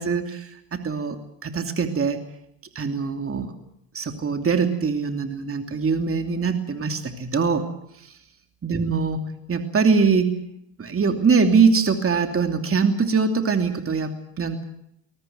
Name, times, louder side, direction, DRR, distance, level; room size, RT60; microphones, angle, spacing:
voice 1, 0.0-2.2 2.7-3.5 3.9-7.7 7.9-8.1 8.6-9.2 9.5-10.3 10.8-14.6, right 5 dB, 30° right, 6 dB, 2.8 m, -22 dB
23.0 x 19.0 x 7.7 m, 0.76 s
supercardioid pair, 75°, 44 cm